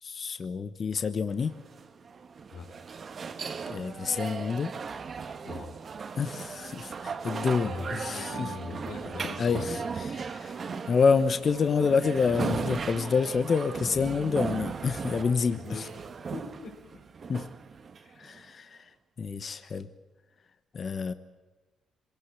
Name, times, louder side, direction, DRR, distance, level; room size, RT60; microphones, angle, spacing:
voice 1, 0.0-1.5 3.4-4.7 6.2-8.5 9.4-15.9 17.3-17.5 18.2-19.9 20.7-21.1, left 5 dB, 45° left, 11 dB, 1.1 m, -28 dB
sound 1, 1.4-18.4, right 5 dB, 45° right, 1.4 m, -37 dB
voice 2, 5.4-5.8 7.6-9.8 10.3-10.8 15.5-15.8 16.3-16.7 18.0-18.3, left 4 dB, 80° left, -3 dB, 4.6 m, -41 dB
26.5 x 17.5 x 8.5 m, 1.2 s
cardioid pair, 90°, 0 cm